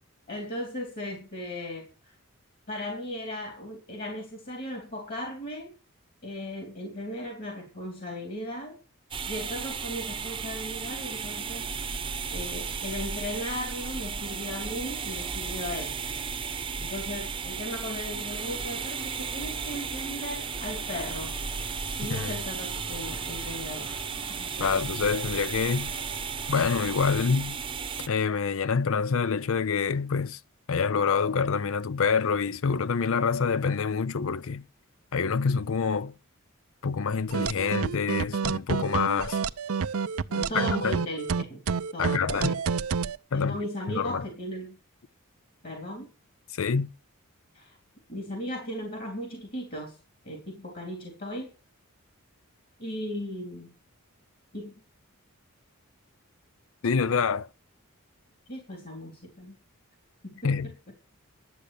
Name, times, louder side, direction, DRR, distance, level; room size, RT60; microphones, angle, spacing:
voice 1, 0.3-2.2 2.7-5.7 6.2-8.8 9.3-11.7 12.3-16.0 16.8-21.4 22.0-24.9 40.3-42.6 43.3-44.8 45.6-46.1 47.5-47.8 48.1-50.0 50.2-51.5 52.8-53.7 54.5-54.7 58.5-59.5 60.2-60.7, left 1 dB, 45° left, 3.3 m, -37 dB
sound 1, 9.1-28.1, right 5 dB, 25° right, 0.9 m, -34 dB
sound 2, 18.3-27.3, left 2 dB, 85° left, 3.3 m, -49 dB
voice 2, 24.6-25.9 26.5-27.6 28.1-30.4 30.7-34.6 35.1-36.1 36.8-39.4 40.5-41.0 42.0-42.5 43.3-43.6 43.9-44.2 46.5-46.9 56.8-57.5 60.4-60.7, left 5 dB, 65° left, 0.5 m, -26 dB
sound 3, 37.3-43.2, right 5 dB, 75° right, 0.6 m, -28 dB
11.5 x 7.8 x 6.8 m
head